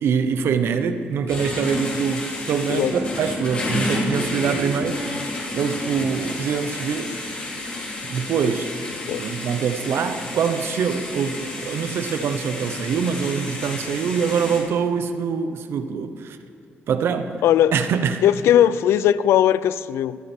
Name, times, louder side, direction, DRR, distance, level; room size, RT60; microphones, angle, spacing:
voice 1, 0.0-5.0 5.5-7.2 8.0-8.7 9.2-16.4 16.9-17.3 17.7-18.2, right 6 dB, 70° right, 0.9 m, -24 dB
sound 1, 1.3-14.6, left 1 dB, 25° left, 3.5 m, -30 dB
voice 2, 17.4-17.7 18.2-20.2, left 11 dB, 90° left, 0.4 m, -18 dB
25.0 x 8.8 x 4.5 m
cardioid pair, 110°, 4 cm